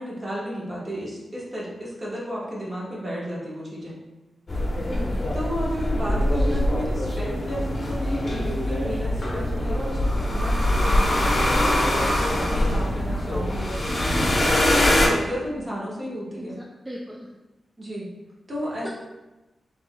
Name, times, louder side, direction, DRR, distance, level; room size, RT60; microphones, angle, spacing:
voice 1, 0.0-4.0 5.3-14.0 14.3-16.6 17.8-18.1 18.5-18.9, equal, 25° right, -6 dB, 1.2 m, -33 dB
sound 1, 4.5-15.1, left 1 dB, 30° left, 0.9 m, -23 dB
voice 2, 4.9-5.3 16.3-17.3 18.8-18.9, equal, 5° right, -4 dB, 0.4 m, -37 dB
7.1 x 3.1 x 2.2 m, 1.1 s
wide cardioid pair, 165°, 0 cm